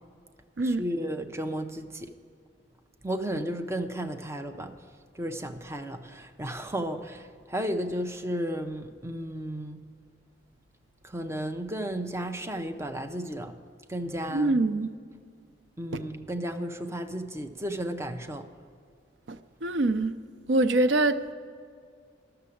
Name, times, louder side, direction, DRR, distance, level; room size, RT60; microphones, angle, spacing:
voice 1, 0.6-2.1 3.0-4.7 5.1-9.8 11.0-13.5 13.9-14.6 15.8-18.5, equal, 15° right, 6 dB, 0.6 m, -33 dB
voice 2, 14.3-14.9 15.9-16.0 19.3-20.2 20.5-21.3, right 2 dB, 90° right, 11 dB, 0.5 m, -25 dB
12.5 x 6.8 x 8.4 m, 2.1 s
head